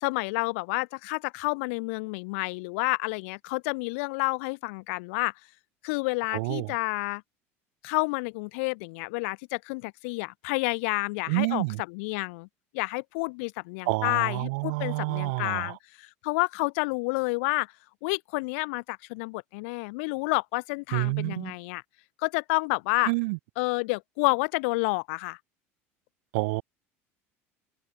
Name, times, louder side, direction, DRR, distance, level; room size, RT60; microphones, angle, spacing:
voice 1, 0.0-5.3 5.8-7.2 7.8-12.5 12.7-17.7 18.0-21.8 22.2-23.1 23.6-25.4, left 29 dB, 75° left, 1.0 m, -29 dB
voice 2, 6.3-6.8 11.3-11.8 13.9-15.8 20.9-21.5 23.1-23.4 26.3-26.6, right 28 dB, 75° right, 0.4 m, -28 dB
open air
hypercardioid pair, 85°, 7 cm